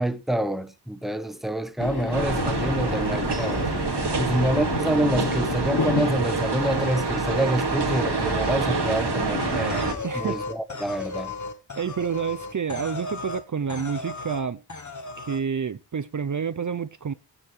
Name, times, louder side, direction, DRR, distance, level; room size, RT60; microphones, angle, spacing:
voice 1, 0.0-3.7 4.2-9.9 10.1-11.4, right 1 dB, ahead, 1.0 m, -27 dB
sound 1, 1.8-10.0, left 3 dB, 75° left, 2.6 m, -31 dB
sound 2, 2.1-9.9, right 4 dB, 90° right, 2.2 m, -27 dB
sound 3, 9.7-13.4 13.7-14.4 14.7-15.4, left 3 dB, 45° left, 1.5 m, -35 dB
voice 2, 10.0-10.4 11.8-14.6 15.2-17.1, right 6 dB, 50° right, 0.6 m, -29 dB
16.5 x 9.9 x 3.3 m
wide cardioid pair, 80°, 40 cm